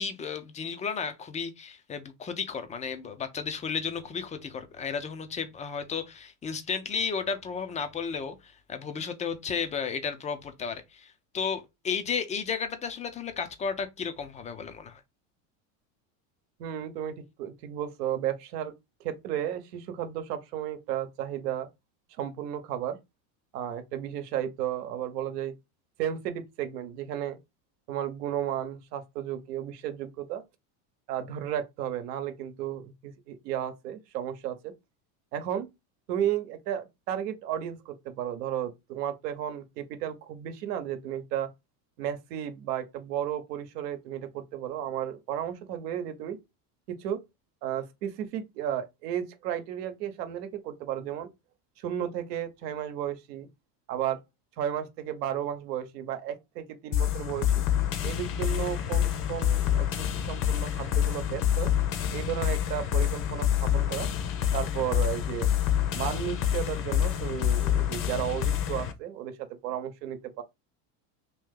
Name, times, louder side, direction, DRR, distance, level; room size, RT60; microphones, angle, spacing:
voice 1, 0.0-15.0, left 6 dB, 15° left, 0.3 m, -33 dB
voice 2, 16.6-18.7 19.0-21.7 22.2-23.0 23.5-25.5 26.0-27.4 27.9-30.4 31.1-34.7 35.3-35.7 36.1-41.5 42.0-46.4 46.9-47.2 47.6-51.3 51.8-53.5 53.9-54.2 54.6-57.6 58.0-61.7 62.1-64.1 64.5-65.5 65.9-70.4, right 10 dB, 85° right, 0.9 m, -33 dB
sound 1, 56.9-68.9, left 10 dB, 45° left, 0.7 m, -27 dB
2.9 x 2.7 x 3.6 m
supercardioid pair, 115°, 46 cm